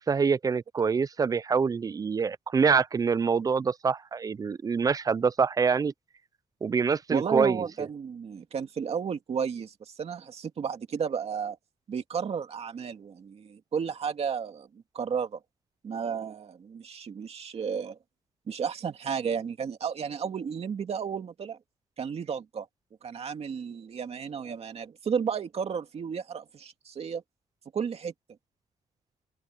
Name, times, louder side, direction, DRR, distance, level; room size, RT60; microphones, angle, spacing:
voice 1, 0.0-5.9 6.6-7.6, right 5 dB, 25° right, 0.4 m, -25 dB
voice 2, 7.1-11.6 11.9-15.4 15.8-18.0 18.5-21.6 22.0-22.7 23.0-27.2 27.7-28.1, right 6 dB, 45° right, 2.3 m, -33 dB
open air
wide cardioid pair, 150°, 14 cm